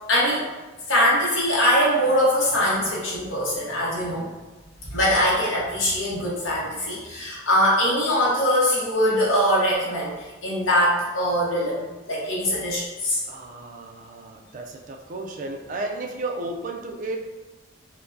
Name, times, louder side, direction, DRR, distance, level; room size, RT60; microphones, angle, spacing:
voice 1, 0.1-0.4 0.9-4.3 4.8-10.1 10.4-13.2, equal, 70° left, -5 dB, 1.0 m, -22 dB
voice 2, 13.3-17.3, right 2 dB, 40° right, 2 dB, 0.3 m, -33 dB
4.4 x 2.1 x 2.6 m, 1.1 s
head